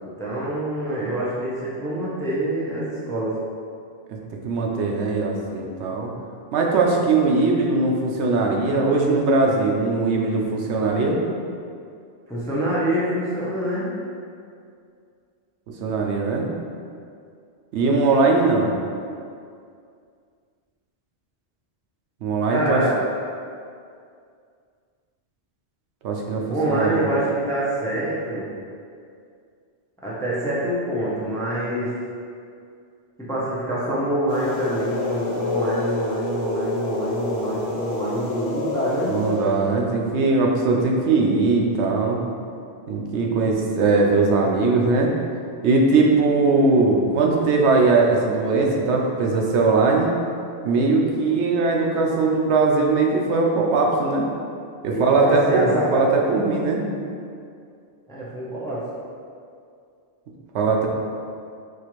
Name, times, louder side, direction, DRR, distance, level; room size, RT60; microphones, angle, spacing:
voice 1, 0.0-3.3 12.3-14.0 22.5-22.9 26.4-28.5 30.0-31.9 33.3-39.2 54.9-56.0 58.1-58.8, right 1 dB, 5° left, -7 dB, 0.4 m, -25 dB
voice 2, 4.4-6.1 6.5-11.2 15.8-16.5 17.7-18.7 22.2-22.8 26.0-27.0 39.1-42.2 42.9-45.1 45.6-50.1 50.6-54.3 54.8-55.6 55.9-56.8 60.5-60.9, right 3 dB, 85° right, 0 dB, 0.9 m, -20 dB
sound 1, 34.3-39.9, left 2 dB, 55° left, 1.1 m, -28 dB
4.4 x 2.4 x 3.0 m, 2.3 s
omnidirectional pair, 1.1 m